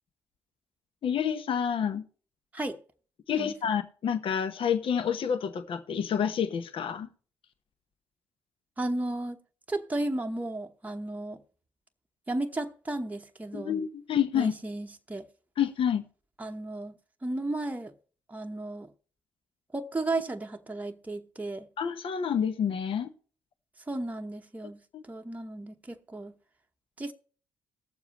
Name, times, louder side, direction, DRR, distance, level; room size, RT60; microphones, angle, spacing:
voice 1, 1.0-2.0 3.3-7.1 13.5-14.5 15.6-16.0 21.8-23.1 24.9-25.0, left 8 dB, 55° left, 0.9 m, -28 dB
voice 2, 8.8-9.4 9.7-11.4 12.3-13.7 14.3-15.3 16.4-17.9 18.3-18.9 19.7-21.7 23.9-26.3 27.0-27.1, right 2 dB, 15° right, 0.9 m, -34 dB
19.5 x 7.1 x 3.0 m
hypercardioid pair, 50°, 11 cm